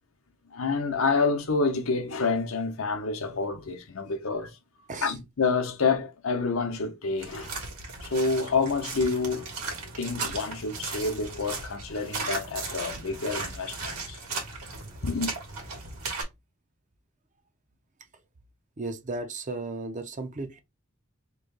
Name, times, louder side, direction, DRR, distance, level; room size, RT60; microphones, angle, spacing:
voice 1, 0.5-4.6 5.0-7.5 8.0-9.5 10.0-14.2 15.0-15.3, left 4 dB, 65° left, 0.8 m, -28 dB
sound 1, 7.2-16.2, right 3 dB, 80° right, 1.5 m, -36 dB
voice 2, 18.8-20.6, right 3 dB, 35° right, 0.5 m, -35 dB
3.1 x 2.7 x 3.9 m
head